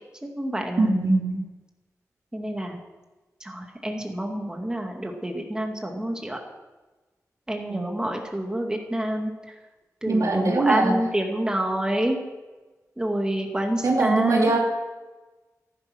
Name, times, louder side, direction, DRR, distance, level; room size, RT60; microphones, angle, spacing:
voice 1, 0.2-1.0 2.3-2.8 3.4-6.4 7.5-9.3 10.0-12.2 13.0-14.5, right 1 dB, 10° right, 2 dB, 2.2 m, -28 dB
voice 2, 0.8-1.4 7.7-7.9 10.1-10.9 13.8-14.6, right 3 dB, 65° right, 0 dB, 2.9 m, -21 dB
14.5 x 12.0 x 6.2 m, 1.2 s
cardioid pair, 75°, 6 cm